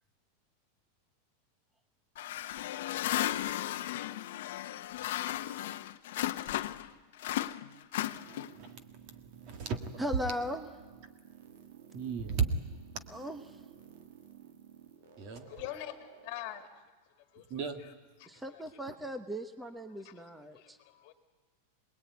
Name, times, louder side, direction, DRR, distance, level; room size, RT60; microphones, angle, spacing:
sound 1, 2.2-6.9 7.2-8.7, left 13 dB, 55° left, 0.9 m, -35 dB
sound 2, 8.0-16.7, right 9 dB, 60° right, 2.7 m, -54 dB
voice 1, 8.6-10.0 11.9-12.5 15.2-15.5 17.5-17.8, right 6 dB, 35° right, 1.8 m, -35 dB
voice 2, 10.0-10.7 13.1-13.6 18.3-20.8, equal, 5° right, 0.9 m, -38 dB
voice 3, 15.5-17.9 18.2-18.8 19.9-21.1, left 13 dB, 35° left, 2.1 m, -46 dB
26.0 x 20.5 x 9.4 m
supercardioid pair, 175°, 0 cm